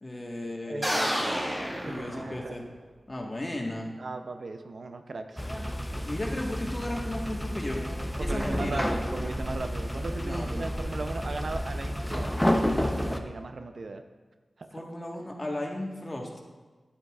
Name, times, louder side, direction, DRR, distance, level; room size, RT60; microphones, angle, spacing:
voice 1, 0.0-1.3 1.8-2.6 3.1-3.9 5.9-7.8 8.2-8.9 10.2-10.7 14.7-16.3, left 1 dB, 35° left, 0 dB, 1.3 m, -35 dB
voice 2, 0.7-1.1 1.9-2.6 4.0-5.4 8.2-14.0 14.6-14.8, right 3 dB, 70° right, 7 dB, 0.5 m, -38 dB
sound 1, 0.8-2.8, equal, 15° right, 1.6 m, -30 dB
sound 2, 5.4-13.2, equal, 5° left, 0.7 m, -30 dB
10.5 x 7.9 x 2.4 m, 1.3 s
cardioid pair, 50°, 0 cm